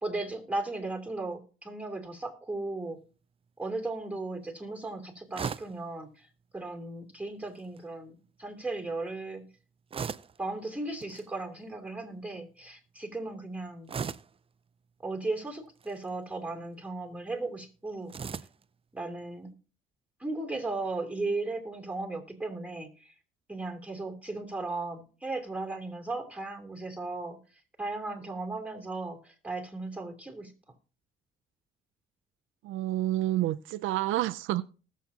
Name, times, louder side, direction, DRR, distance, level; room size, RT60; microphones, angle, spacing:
voice 1, 0.0-3.0 3.6-6.3 6.5-9.4 10.4-14.0 15.0-18.1 18.9-19.5 20.2-23.1 23.5-27.4 27.8-30.5, right 2 dB, 5° right, 3.1 m, -36 dB
sound 1, 5.3-5.8 7.5-7.8 9.9-10.4 11.0-11.3 13.9-14.4 15.7-16.1 18.1-18.6, right 6 dB, 30° right, 0.5 m, -37 dB
voice 2, 32.6-34.6, right 15 dB, 85° right, 0.5 m, -29 dB
19.5 x 7.4 x 2.8 m
cardioid pair, 90°, 20 cm